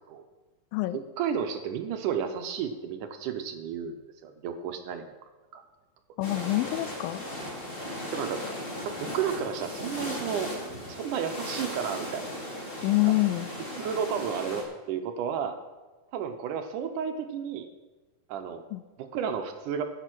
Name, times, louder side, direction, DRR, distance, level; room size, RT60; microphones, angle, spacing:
voice 1, 0.9-5.0 5.5-5.6 6.3-6.4 8.1-8.4 8.8-10.5 10.9-12.5 13.8-15.5 16.1-17.7 18.3-18.6 19.0-19.8, right 7 dB, 75° right, 7 dB, 2.1 m, -32 dB
voice 2, 6.2-7.2 12.8-13.5 18.7-18.8, left 19 dB, 85° left, 15 dB, 2.3 m, -26 dB
sound 1, 6.2-14.6, left 1 dB, 20° left, 1.7 m, -37 dB
12.5 x 8.3 x 6.1 m, 1.2 s
omnidirectional pair, 4.1 m